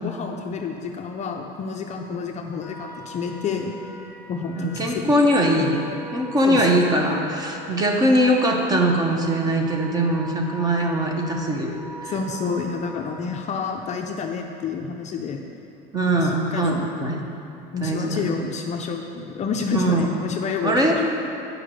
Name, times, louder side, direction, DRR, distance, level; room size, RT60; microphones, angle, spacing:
voice 1, 0.0-3.7 4.3-5.0 6.4-6.7 12.0-15.4 16.1-16.9 17.7-20.7, left 5 dB, 35° left, 2 dB, 0.5 m, -29 dB
sound 1, 2.6-13.9, equal, ahead, 1.3 m, -42 dB
voice 2, 4.6-5.8 6.1-11.8 12.0-12.1 15.9-17.2 17.8-18.3 19.7-20.1 20.6-21.0, right 1 dB, 20° right, 1 dB, 0.9 m, -21 dB
8.4 x 5.1 x 6.2 m, 2.8 s
cardioid pair, 145°, 21 cm